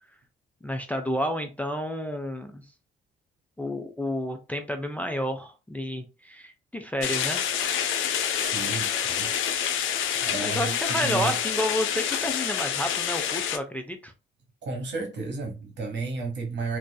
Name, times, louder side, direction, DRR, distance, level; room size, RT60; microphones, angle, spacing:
voice 1, 0.6-2.6 3.6-7.4 10.4-14.1, equal, 5° left, 0.4 m, -30 dB
sound 1, 7.0-13.6, left 9 dB, 85° left, 0.5 m, -27 dB
voice 2, 8.3-9.3 10.2-11.4 14.6-16.8, right 4 dB, 60° right, 1.2 m, -33 dB
2.6 x 2.4 x 2.2 m
cardioid pair, 90°, 20 cm